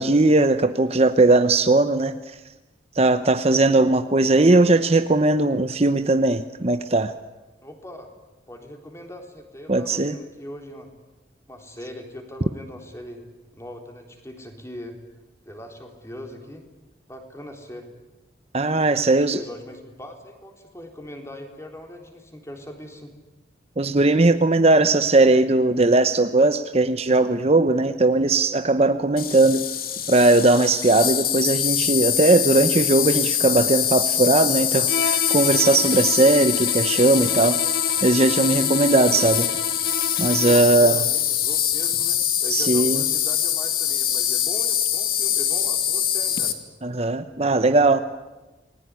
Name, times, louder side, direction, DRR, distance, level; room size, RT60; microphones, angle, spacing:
voice 1, 0.0-2.4 2.9-7.1 9.7-10.2 18.5-19.4 23.8-29.6 30.1-37.5 38.0-39.5 40.2-41.0 42.5-43.0 46.8-48.0, right 2 dB, 35° right, 9 dB, 0.9 m, -19 dB
voice 2, 7.6-8.1 8.5-10.9 11.5-13.2 13.5-15.0 15.4-16.7 17.1-17.9 19.0-23.2 37.2-37.5 39.1-39.2 40.7-46.6 47.4-48.0, equal, 15° left, 3 dB, 3.8 m, -40 dB
Insect, 29.2-46.5, left 10 dB, 55° left, 2.4 m, -24 dB
Bowed string instrument, 34.9-40.8, left 5 dB, 75° left, 0.9 m, -31 dB
28.5 x 20.5 x 9.7 m, 1.1 s
head